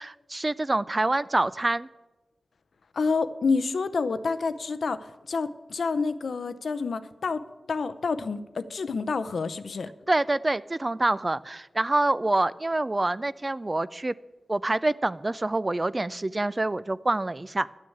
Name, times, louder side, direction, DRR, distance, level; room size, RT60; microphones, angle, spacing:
voice 1, 0.0-1.9 10.1-14.1 14.5-17.7, right 2 dB, 30° right, 17 dB, 0.3 m, -26 dB
voice 2, 2.9-9.9, left 4 dB, 75° left, 13 dB, 0.6 m, -28 dB
11.0 x 6.4 x 8.5 m, 1.1 s
wide cardioid pair, 80°, 0 cm